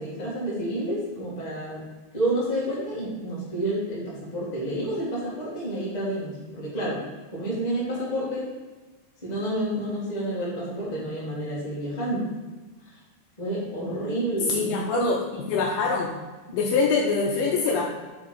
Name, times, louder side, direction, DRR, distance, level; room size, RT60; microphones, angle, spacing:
voice 1, 0.0-1.8 2.1-7.0 7.3-8.5 9.2-12.3 12.8-12.9 13.4-15.1, right 1 dB, 30° left, -7 dB, 0.7 m, -29 dB
voice 2, 14.5-16.1 16.5-17.8, left 4 dB, 80° left, 0 dB, 2.2 m, -24 dB
5.9 x 4.7 x 4.5 m, 1.3 s
omnidirectional pair, 4.5 m